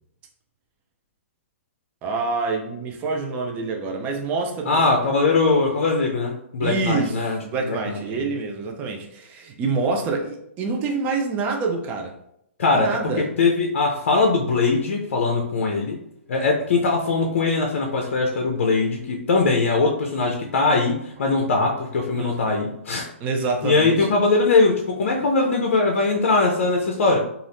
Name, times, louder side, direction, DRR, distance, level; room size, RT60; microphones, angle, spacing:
voice 1, 2.0-4.8 6.6-12.1 12.7-13.3 22.2-22.5 23.2-24.2, right 4 dB, 20° right, 2 dB, 0.4 m, -26 dB
voice 2, 4.7-7.4 7.6-8.3 12.6-12.9 13.4-16.0 16.3-23.1 23.6-27.2, left 3 dB, 65° left, 1 dB, 0.5 m, -21 dB
2.6 x 2.4 x 3.3 m, 0.75 s
hypercardioid pair, 145°, 7 cm